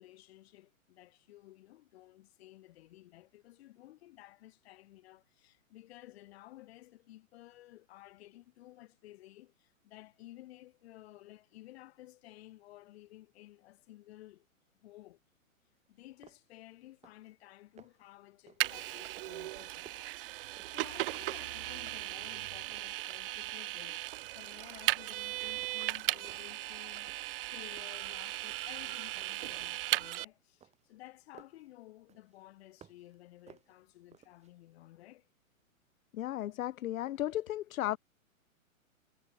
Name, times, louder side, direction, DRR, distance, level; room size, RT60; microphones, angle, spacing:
voice 1, 0.0-14.5 14.8-15.2 15.9-20.1 20.7-35.3, left 16 dB, 45° left, 4.1 m, -55 dB
sound 1, 15.8-15.9 16.2-16.6 16.9-17.3 17.6-18.1 18.5-18.8 19.2-21.0 21.3-22.4 22.7-23.8 24.2-24.5 24.9-25.3 25.6-26.6 27.1-27.5 27.8-28.8 29.2-31.7 32.1-33.2 33.5-34.5, right 8 dB, 15° right, 4.2 m, -60 dB
Vehicle, 18.6-30.3, right 16 dB, 40° right, 0.8 m, -37 dB
voice 2, 36.1-38.0, left 13 dB, 75° left, 0.5 m, -35 dB
hypercardioid pair, 130°, 42 cm